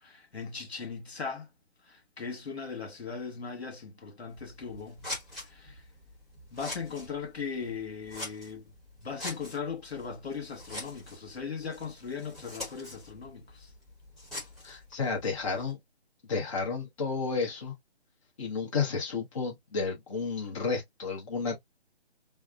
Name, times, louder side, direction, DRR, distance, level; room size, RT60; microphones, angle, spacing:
voice 1, 0.0-1.5 1.9-5.0 5.3-5.8 6.5-8.7 9.0-13.7, left 5 dB, 70° left, 1.5 m, -38 dB
Scissors, 4.3-15.7, left 2 dB, ahead, 1.0 m, -45 dB
voice 2, 14.6-15.8 16.3-17.7 18.4-21.6, left 4 dB, 30° left, 1.0 m, -32 dB
3.4 x 2.1 x 3.6 m
figure-of-eight pair, 150°, 33 cm